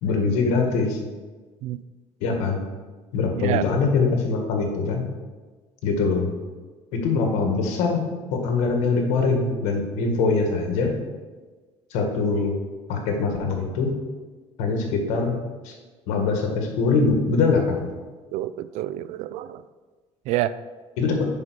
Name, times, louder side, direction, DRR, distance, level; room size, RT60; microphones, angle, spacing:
voice 1, 0.0-1.0 2.2-2.6 3.1-5.1 5.8-6.3 6.9-8.0 8.3-11.0 11.9-12.5 12.9-13.9 14.6-15.4 15.6-15.8 16.1-17.9 21.0-21.3, left 4 dB, 85° left, 3 dB, 1.7 m, -23 dB
voice 2, 18.3-19.6 20.3-20.6, right 14 dB, 75° right, 15 dB, 0.4 m, -27 dB
7.6 x 5.5 x 6.3 m, 1.3 s
cardioid pair, 130°, 11 cm